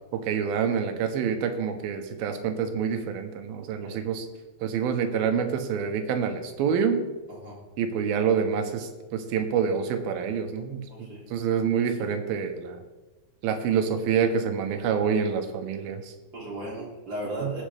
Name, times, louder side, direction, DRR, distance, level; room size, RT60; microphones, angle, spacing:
voice 1, 0.1-4.3 4.6-7.0 7.8-12.8 13.4-16.1 17.4-17.5, right 7 dB, 80° right, 7 dB, 2.8 m, -27 dB
voice 2, 7.3-7.6 10.9-11.3 11.7-12.1 16.3-17.6, right 1 dB, 30° right, -5 dB, 3.1 m, -36 dB
17.5 x 6.4 x 3.4 m, 1.2 s
omnidirectional pair, 4.2 m